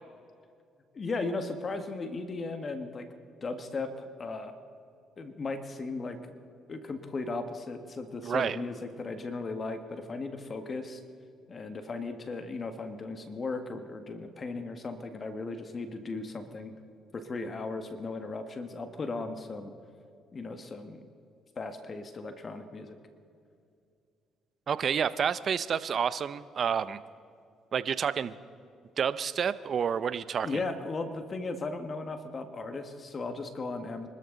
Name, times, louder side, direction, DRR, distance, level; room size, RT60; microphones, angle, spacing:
voice 1, 0.9-3.1 3.4-4.5 5.2-6.2 6.7-11.0 11.5-16.7 17.1-19.7 20.3-21.1 21.5-23.0 30.4-34.1, left 3 dB, 40° left, 7 dB, 1.7 m, -36 dB
voice 2, 8.2-8.6 24.7-27.0 27.7-28.4 29.0-30.6, right 7 dB, 50° right, 15 dB, 0.7 m, -29 dB
25.0 x 13.5 x 4.0 m, 2.4 s
supercardioid pair, 70°, 0 cm